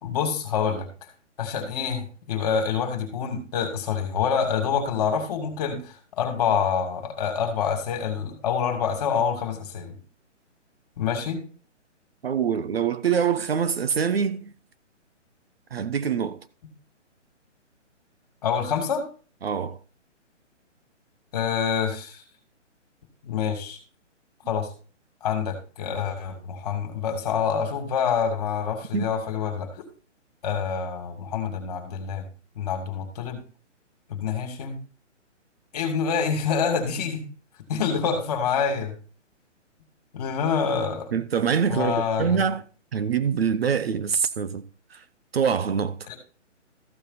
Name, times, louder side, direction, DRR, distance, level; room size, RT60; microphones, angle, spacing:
voice 1, 0.0-0.9 1.4-9.9 11.0-11.4 18.4-19.1 21.3-22.2 23.2-23.8 24.5-24.7 25.2-29.7 30.4-32.2 32.6-33.4 34.1-34.8 35.7-37.2 37.7-39.0 40.1-41.1 41.7-42.4 46.1-46.2, left 6 dB, 30° left, 2.6 m, -26 dB
voice 2, 12.2-14.5 15.7-16.4 19.4-19.8 28.9-29.1 41.1-42.6 42.9-44.6 44.9-45.0 45.3-46.0, right 7 dB, 55° right, 1.0 m, -24 dB
14.5 x 6.4 x 4.2 m
hypercardioid pair, 165°, 37 cm